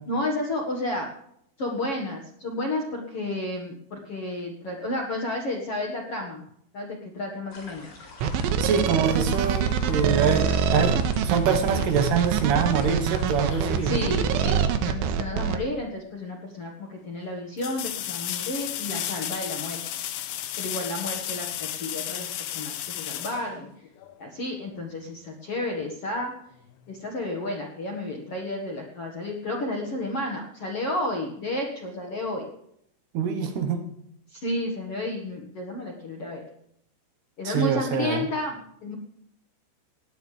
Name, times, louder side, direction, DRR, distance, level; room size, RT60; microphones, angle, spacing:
voice 1, 0.1-1.1 1.6-6.4 6.7-7.9 13.8-19.8 20.6-23.7 24.2-26.3 26.9-32.5 34.3-36.4 37.4-38.9, left 1 dB, 70° left, 0 dB, 1.3 m, -31 dB
sound 1, 7.5-14.2, left 3 dB, 50° left, 6.3 m, -45 dB
sound 2, 8.2-15.6, right 7 dB, 85° right, 3.6 m, -24 dB
voice 2, 8.6-14.0 33.1-33.8 37.4-38.3, right 6 dB, 70° right, 6 dB, 2.9 m, -25 dB
sound 3, 16.2-16.3 17.6-24.2 27.0-27.1, left 11 dB, 90° left, 2.0 m, -33 dB
19.5 x 18.0 x 3.4 m, 0.73 s
omnidirectional pair, 5.5 m